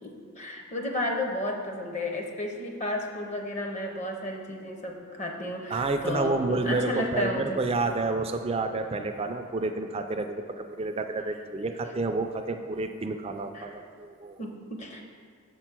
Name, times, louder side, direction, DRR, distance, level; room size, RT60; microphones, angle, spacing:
voice 1, 0.0-7.6 13.5-13.8 14.4-15.0, left 1 dB, 30° left, 2 dB, 0.6 m, -33 dB
voice 2, 5.7-14.4, right 3 dB, 25° right, 6 dB, 0.4 m, -29 dB
6.9 x 4.5 x 6.0 m, 2.3 s
head